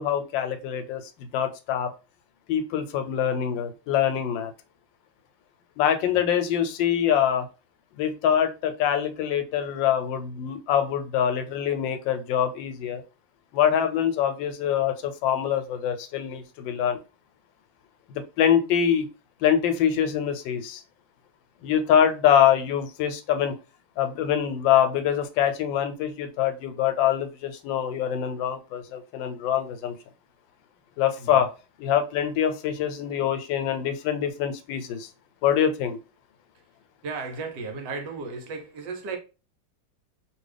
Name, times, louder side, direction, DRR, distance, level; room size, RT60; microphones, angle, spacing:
voice 1, 0.0-1.9 2.5-4.5 5.8-7.5 8.0-13.0 13.5-17.0 18.1-19.1 19.4-20.8 21.6-23.5 24.0-29.9 31.0-31.5 31.8-35.1 35.4-36.0, left 9 dB, 90° left, 1.3 m, -24 dB
voice 2, 37.0-39.2, right 4 dB, 75° right, 1.4 m, -35 dB
2.9 x 2.6 x 3.2 m
omnidirectional pair, 2.0 m